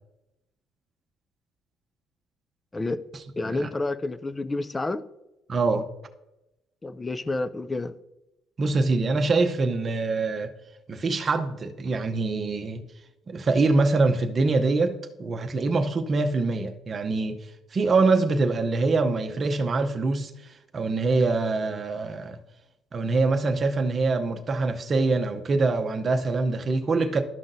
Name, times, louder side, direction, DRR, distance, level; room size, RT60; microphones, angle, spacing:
voice 1, 3.4-5.0 6.8-7.9, left 2 dB, 15° left, 0.3 m, -29 dB
voice 2, 5.5-5.9 8.6-10.5 10.9-12.8 13.3-17.4 17.7-20.3 20.7-22.4 22.9-27.2, right 3 dB, 35° right, 0.7 m, -24 dB
12.5 x 5.8 x 2.6 m
cardioid pair, 135°, 0 cm